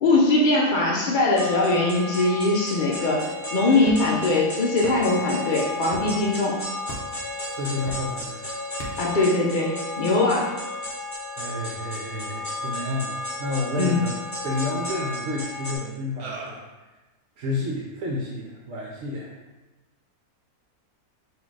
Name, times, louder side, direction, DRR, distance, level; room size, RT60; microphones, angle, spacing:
voice 1, 0.0-6.6 9.0-10.5 13.8-14.0, left 2 dB, 85° left, -2 dB, 0.4 m, -21 dB
sound 1, 1.4-15.8, left 2 dB, 10° left, 1.1 m, -33 dB
sound 2, 3.9-4.2 4.8-5.2 5.9-6.1 6.9-7.2 7.9-8.2 8.8-9.2, equal, 45° left, 1.0 m, -35 dB
voice 2, 7.5-8.5 11.3-14.2 14.4-16.6 17.4-19.3, left 2 dB, 65° right, -2 dB, 1.0 m, -30 dB
sound 3, 14.9-15.2 16.2-16.7, right 3 dB, 85° right, 1.2 m, -39 dB
4.2 x 2.8 x 4.6 m, 1.1 s
omnidirectional pair, 1.6 m